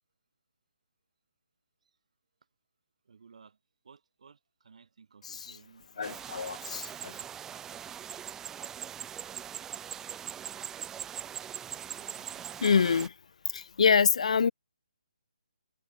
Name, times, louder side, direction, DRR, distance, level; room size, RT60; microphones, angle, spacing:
voice 1, 3.1-3.6 3.8-6.7, right 5 dB, 60° right, 2.4 m, -58 dB
voice 2, 5.2-5.6 6.0-7.2 12.6-13.2 13.4-14.5, left 6 dB, 60° left, 1.1 m, -26 dB
sound 1, 6.0-13.1, right 9 dB, 10° right, 1.1 m, -41 dB
figure-of-eight pair, 150°, 4 cm